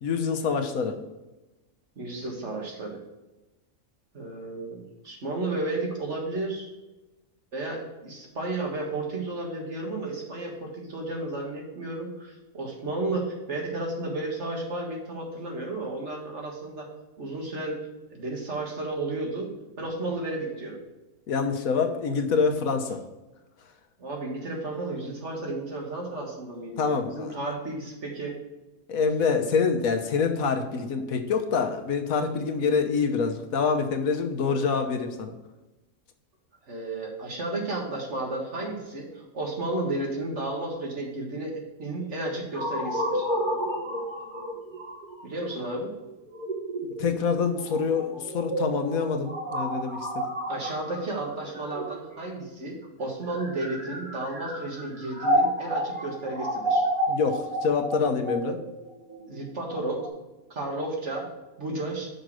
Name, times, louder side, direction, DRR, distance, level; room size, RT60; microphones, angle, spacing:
voice 1, 0.0-1.0 21.3-23.0 26.8-27.3 28.9-35.3 47.0-50.2 57.1-58.6, left 5 dB, 80° left, 6 dB, 1.3 m, -26 dB
voice 2, 2.0-3.0 4.1-6.7 7.5-16.9 17.2-17.8 18.1-19.5 19.8-20.8 24.0-28.4 36.7-43.3 45.2-45.9 50.5-56.8 59.3-60.1 60.5-61.3 61.6-62.1, right 2 dB, 55° right, 0 dB, 2.0 m, -33 dB
sound 1, 42.5-52.4 53.1-60.1, equal, 35° right, 1.6 m, -30 dB
6.7 x 5.2 x 6.2 m, 1.1 s
omnidirectional pair, 1.5 m